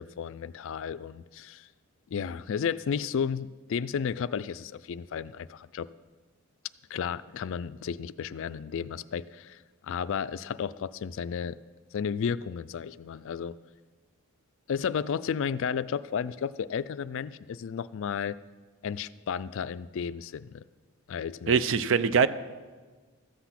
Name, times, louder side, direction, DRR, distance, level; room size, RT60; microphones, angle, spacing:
voice 1, 0.0-1.7 2.1-5.9 6.9-11.6 11.9-13.5 14.7-18.4 18.8-20.6 21.1-21.6, left 7 dB, 60° left, 16 dB, 0.3 m, -33 dB
voice 2, 21.5-22.3, right 6 dB, 60° right, 14 dB, 0.5 m, -22 dB
14.0 x 8.1 x 5.9 m, 1.4 s
head